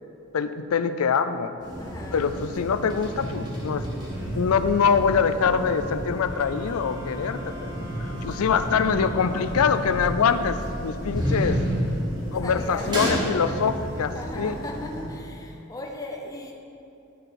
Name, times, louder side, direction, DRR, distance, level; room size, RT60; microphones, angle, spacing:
voice 1, 0.3-1.5 2.1-3.9 4.3-7.8 8.2-11.6 12.3-14.6, left 6 dB, 90° left, 12 dB, 0.4 m, -24 dB
sound 1, 1.6-15.1, equal, 20° right, 1.6 m, -31 dB
voice 2, 1.8-2.3 12.4-13.2 13.5-13.8 14.1-16.5, left 2 dB, 15° left, 0 dB, 0.5 m, -39 dB
sound 2, 6.2-10.1, left 1 dB, 50° left, 2.2 m, -43 dB
10.5 x 6.7 x 4.3 m, 2.6 s
head